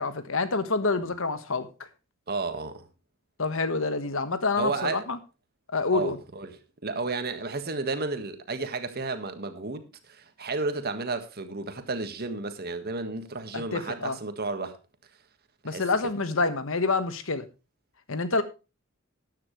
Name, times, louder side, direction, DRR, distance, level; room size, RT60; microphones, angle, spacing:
voice 1, 0.0-1.7 3.4-5.2 5.7-6.2 13.5-14.2 15.6-17.5 18.1-18.4, left 3 dB, 70° left, 1.4 m, -27 dB
voice 2, 2.3-2.9 4.6-5.0 5.9-14.8 15.6-15.8, right 3 dB, 50° right, 1.6 m, -32 dB
13.5 x 10.0 x 3.2 m
head